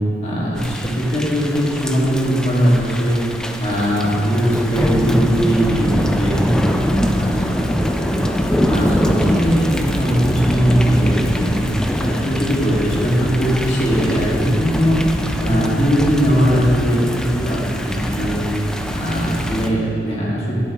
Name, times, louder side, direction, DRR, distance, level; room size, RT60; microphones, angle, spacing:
voice 1, 0.2-3.2 3.6-6.7 7.0-8.3 8.7-11.5 12.0-15.0 15.4-17.6 17.9-18.4 18.9-20.6, equal, 35° left, -5 dB, 1.9 m, -19 dB
Thunder / Rain, 0.6-19.7, equal, 5° left, 0.3 m, -23 dB
10.5 x 9.8 x 3.0 m, 2.5 s
head